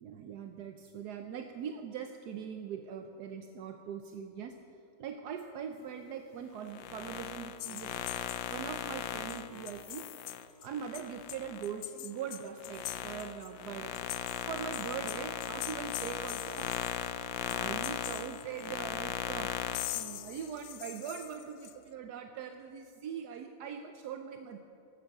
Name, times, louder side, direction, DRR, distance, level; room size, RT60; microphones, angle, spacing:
voice 1, 0.0-4.6 5.0-8.0 8.5-10.1 10.6-14.0 14.5-16.8 17.1-24.6, right 7 dB, 65° right, 6 dB, 1.0 m, -42 dB
sound 1, 6.6-11.7 12.2-20.0, left 10 dB, 75° left, 1.3 m, -38 dB
sound 2, 7.6-8.8 9.3-9.4 9.7-10.7 10.9-13.5 13.7-17.1 17.4-18.9 19.7-21.7, left 15 dB, 90° left, 1.5 m, -43 dB
14.5 x 12.5 x 6.5 m, 2.7 s
omnidirectional pair, 2.2 m